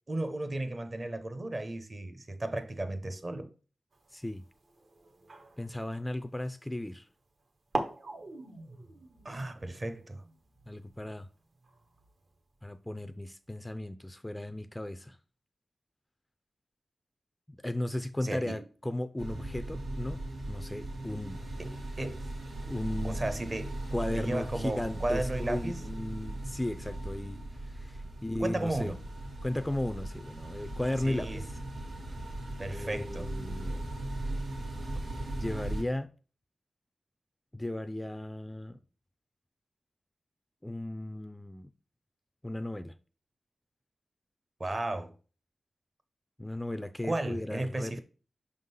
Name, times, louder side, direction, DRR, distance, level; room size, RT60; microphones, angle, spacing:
voice 1, 0.1-3.5 9.2-10.2 18.2-18.6 21.6-22.3 23.0-23.8 24.1-25.8 28.4-29.0 31.0-31.4 32.6-33.3 44.6-45.1 47.0-48.0, right 2 dB, 35° right, 0.8 m, -34 dB
sound 1, 3.9-6.8 7.4-7.5 7.7-12.3, right 2 dB, 60° right, 1.0 m, -42 dB
voice 2, 4.1-4.4 5.6-7.1 10.7-11.3 12.6-15.2 17.5-21.4 22.7-23.2 23.9-28.9 29.4-31.6 32.7-33.8 35.4-36.1 37.5-38.8 40.6-41.7 42.4-42.9 46.4-48.0, left 1 dB, 10° left, 0.4 m, -36 dB
sound 2, 19.2-35.8, right 1 dB, 90° right, 1.7 m, -38 dB
5.7 x 3.7 x 5.4 m
wide cardioid pair, 90°, 0 cm